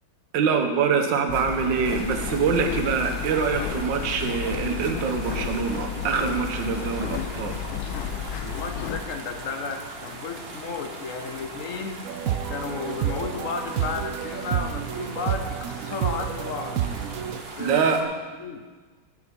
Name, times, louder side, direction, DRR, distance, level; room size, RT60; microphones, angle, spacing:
voice 1, 0.3-7.6 17.6-18.0, right 6 dB, 65° right, 6 dB, 1.7 m, -24 dB
sound 1, 1.3-9.0, left 9 dB, 90° left, 1.4 m, -32 dB
sound 2, 1.8-18.0, right 2 dB, 40° right, 1.1 m, -40 dB
voice 2, 8.4-12.0 12.5-16.8 17.3-18.1 18.4-18.7, left 5 dB, 60° left, 6 dB, 0.9 m, -33 dB
sound 3, 12.0-17.4, right 10 dB, 90° right, 0.7 m, -30 dB
15.5 x 6.8 x 5.2 m, 1.4 s
omnidirectional pair, 2.2 m